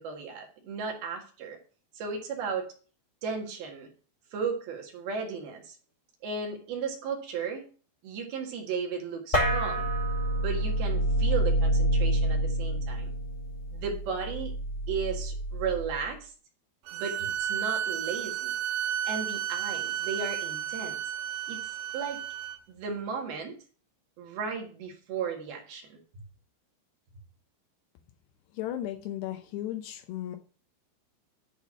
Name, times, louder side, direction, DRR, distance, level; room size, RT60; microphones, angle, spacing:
voice 1, 0.0-1.6 1.9-2.7 3.2-3.9 4.3-5.7 6.2-7.7 8.0-9.9 10.4-13.1 13.7-14.6 14.9-16.3 16.9-18.5 19.0-21.0 21.5-22.2 22.7-23.6 24.2-26.0, right 5 dB, 60° right, 3.2 m, -35 dB
sound 1, 9.3-16.1, right 1 dB, 15° left, 1.2 m, -28 dB
sound 2, 16.9-22.6, right 10 dB, 75° right, 2.5 m, -32 dB
voice 2, 28.6-30.4, left 12 dB, 90° left, 2.4 m, -35 dB
11.0 x 4.2 x 7.3 m
omnidirectional pair, 5.8 m